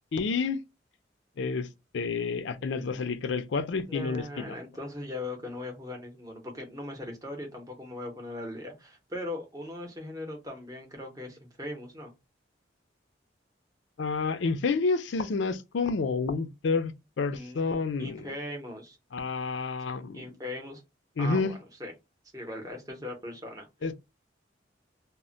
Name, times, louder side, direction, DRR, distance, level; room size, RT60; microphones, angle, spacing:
voice 1, 0.1-0.6 1.4-1.7 1.9-4.6 14.0-18.4 19.1-20.3 21.2-21.5 23.8-23.9, left 4 dB, 85° left, 0.4 m, -29 dB
voice 2, 3.9-12.1 17.3-17.7 18.0-19.0 20.1-20.8 21.2-21.9 22.3-23.7, left 1 dB, 20° right, 0.7 m, -39 dB
2.1 x 2.1 x 3.7 m
head